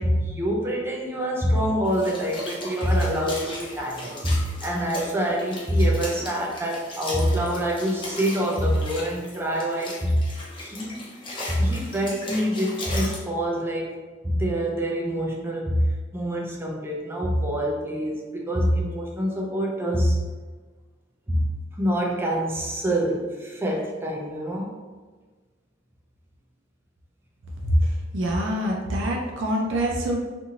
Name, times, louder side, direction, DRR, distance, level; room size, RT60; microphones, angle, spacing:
voice 1, 0.0-10.2 10.6-11.1 11.5-13.9 14.2-20.2 21.3-21.5 21.8-24.7, equal, 10° right, -2 dB, 0.4 m, -25 dB
sound 1, 1.8-13.2, left 1 dB, 25° left, 0.6 m, -37 dB
voice 2, 27.7-30.2, equal, 85° right, -1 dB, 0.5 m, -24 dB
2.7 x 2.6 x 2.8 m, 1.3 s
head